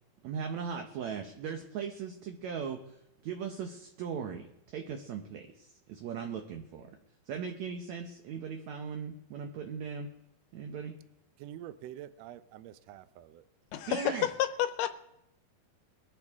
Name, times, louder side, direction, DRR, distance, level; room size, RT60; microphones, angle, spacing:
voice 1, 0.2-2.8 3.2-4.5 4.7-6.9 7.3-10.1 10.5-10.9 13.9-14.3, right 6 dB, 65° right, 2.0 m, -38 dB
voice 2, 11.4-13.4, right 12 dB, 85° right, 1.5 m, -46 dB
voice 3, 13.7-14.9, left 11 dB, 80° left, 2.4 m, -30 dB
22.5 x 11.5 x 3.6 m
omnidirectional pair, 3.9 m